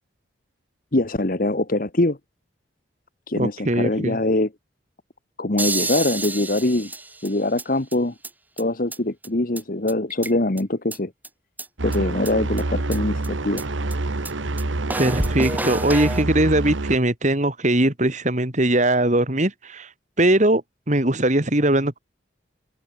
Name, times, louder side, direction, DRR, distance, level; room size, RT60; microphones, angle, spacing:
voice 1, 0.9-2.2 3.3-4.5 5.4-6.9 7.2-8.1 8.6-11.1 11.8-13.7, left 2 dB, 45° left, 1.3 m, -23 dB
voice 2, 3.4-4.2 15.0-22.0, right 1 dB, 40° right, 2.6 m, -21 dB
sound 1, 5.6-7.6 7.9-8.0 8.2-8.3 8.6-8.7 8.9-9.0 9.2-9.3 9.6-9.7 9.9-10.6 10.9-11.0 11.2-11.3 11.6-11.7 11.9-12.0 12.3-12.4 12.6-12.7 12.9-13.0 13.2-13.3 13.6-13.7 13.9-14.0 14.2-14.3 14.6-14.7 14.9-16.2, right 2 dB, 10° right, 3.2 m, -29 dB
sound 2, 11.8-17.0, right 2 dB, 80° right, 1.3 m, -27 dB
open air
head